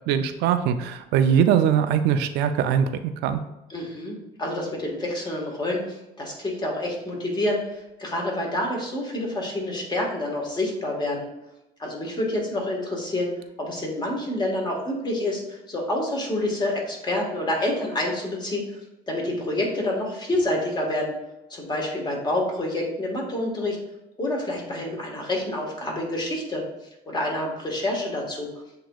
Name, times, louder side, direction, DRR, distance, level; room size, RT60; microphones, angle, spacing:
voice 1, 0.1-2.9 3.2-3.4, right 8 dB, 85° right, 9 dB, 0.4 m, -21 dB
voice 2, 3.7-11.3 11.8-13.3 13.6-18.6 19.1-21.1 21.5-23.8 24.2-26.6 27.1-28.5, left 1 dB, 25° left, -1 dB, 1.4 m, -28 dB
7.7 x 2.9 x 2.3 m, 0.91 s
cardioid pair, 110°, 17 cm